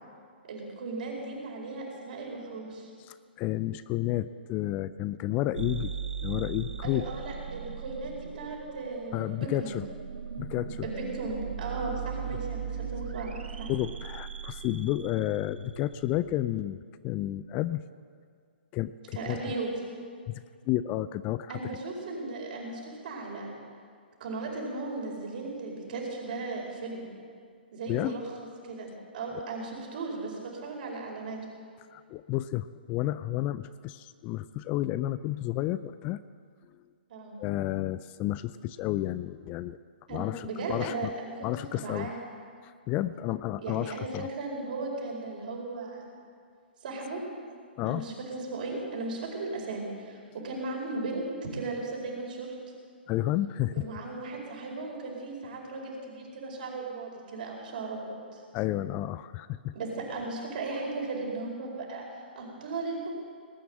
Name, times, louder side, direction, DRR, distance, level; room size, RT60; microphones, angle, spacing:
voice 1, 0.4-2.9 6.8-9.8 10.8-13.3 13.6-13.7 19.1-19.7 21.5-23.5 24.2-27.0 27.7-28.2 28.7-28.9 29.1-31.4 37.1-37.4 40.1-41.3 41.7-42.2 43.6-46.1 46.8-47.2 47.8-51.2 51.5-52.5 53.7-58.4 59.7-62.0 62.3-63.1, right 3 dB, 55° right, -1 dB, 4.9 m, -36 dB
voice 2, 3.0-5.9 6.2-7.1 9.1-9.9 10.4-10.9 12.3-12.4 13.7-16.8 17.0-17.8 18.7-19.5 20.3-20.4 20.7-21.7 27.9-28.2 29.3-29.4 31.9-36.2 37.4-39.8 40.1-41.1 41.4-42.1 42.6-44.3 47.8-48.1 53.1-53.9 58.5-59.7, left 14 dB, 25° left, 15 dB, 0.4 m, -31 dB
sound 1, 5.6-16.2, right 7 dB, 70° right, 1.2 m, -38 dB
19.5 x 9.2 x 7.8 m, 2.1 s
figure-of-eight pair, 125°, 6 cm